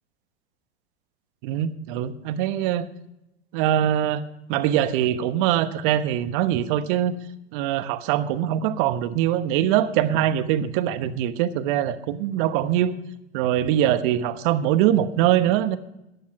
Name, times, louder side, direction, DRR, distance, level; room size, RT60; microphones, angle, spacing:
voice 1, 1.4-2.9 3.5-4.2 4.5-7.2 7.5-12.9 13.3-15.8, right 11 dB, 50° right, 12 dB, 1.1 m, -23 dB
14.5 x 10.0 x 4.7 m, 0.88 s
hypercardioid pair, 100°, 33 cm